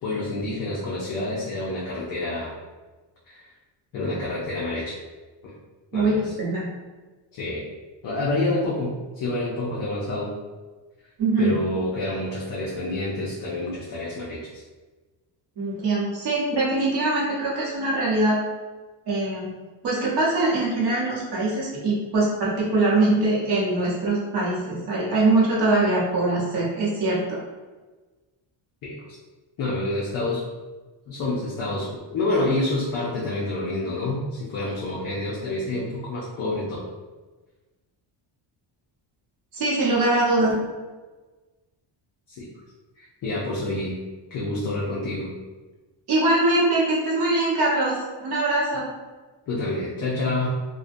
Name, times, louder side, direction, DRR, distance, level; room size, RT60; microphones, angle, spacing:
voice 1, 0.0-2.5 3.3-3.4 3.9-5.0 5.9-6.3 7.3-7.6 8.0-10.3 11.4-14.6 28.8-29.2 29.6-30.4 31.1-36.9 42.3-42.5 43.0-44.0 44.3-45.3 49.5-50.5, left 2 dB, 45° left, -5 dB, 0.5 m, -28 dB
voice 2, 5.9-6.7 11.2-11.6 15.6-18.4 19.1-19.5 19.8-27.4 39.5-40.5 46.1-48.9, right 2 dB, 55° right, -6 dB, 0.8 m, -22 dB
2.4 x 2.1 x 2.5 m, 1.3 s
cardioid pair, 170°, 47 cm